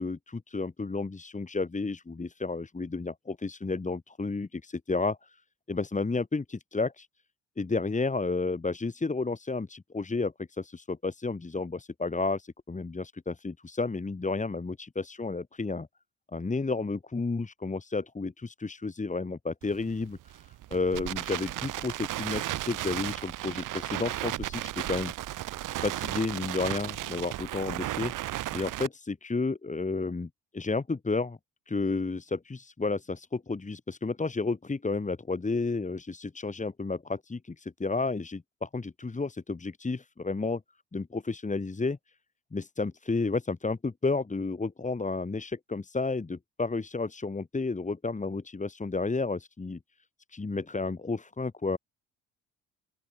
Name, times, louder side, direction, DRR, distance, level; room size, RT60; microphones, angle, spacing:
voice 1, 0.0-5.4 5.7-7.1 7.6-15.9 16.3-25.1 25.8-31.4 31.7-40.6 40.9-42.0 42.5-49.8 50.3-51.8, left 3 dB, 20° left, 3.1 m, -32 dB
Crackle, 19.6-28.9, right 15 dB, 70° right, 6.6 m, -35 dB
open air
supercardioid pair, 60°, 32 cm